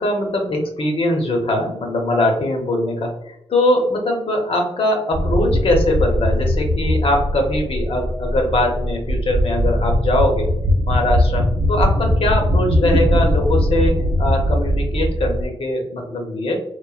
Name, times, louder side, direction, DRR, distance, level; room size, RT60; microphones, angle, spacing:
voice 1, 0.0-10.5 10.9-16.6, left 1 dB, 60° left, 1 dB, 0.7 m, -21 dB
sound 1, 5.1-15.5, equal, 70° right, 0.4 m, -20 dB
3.0 x 2.0 x 2.3 m, 0.78 s
wide cardioid pair, 115°, 11 cm